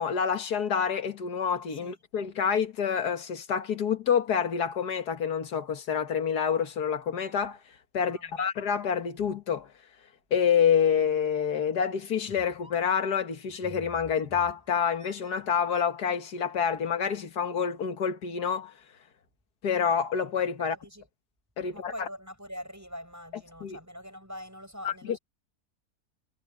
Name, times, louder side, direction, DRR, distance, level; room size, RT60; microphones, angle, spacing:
voice 1, 0.0-7.6 7.9-9.7 10.3-18.7 19.6-20.8 21.6-22.1 23.6-23.8 24.8-25.2, left 7 dB, 85° left, 2.0 m, -27 dB
voice 2, 8.0-8.5 20.7-21.1 21.7-25.2, equal, 10° right, 7.3 m, -44 dB
sound 1, 12.3-12.9 13.5-16.2, equal, 10° left, 6.8 m, -51 dB
omnidirectional pair, 1.6 m